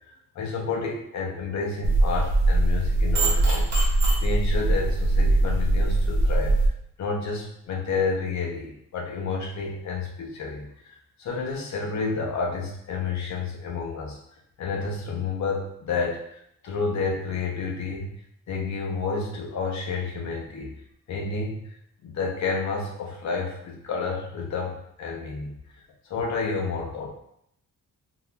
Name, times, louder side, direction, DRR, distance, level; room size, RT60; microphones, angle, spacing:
voice 1, 0.3-6.5 7.0-14.2 14.6-18.1 18.5-20.7 21.1-21.7 22.0-25.5 26.0-27.1, left 4 dB, 55° left, -1 dB, 0.8 m, -30 dB
sound 1, 1.8-6.7, right 2 dB, 55° right, 0.9 m, -21 dB
3.7 x 2.8 x 2.3 m, 0.75 s
wide cardioid pair, 170°, 33 cm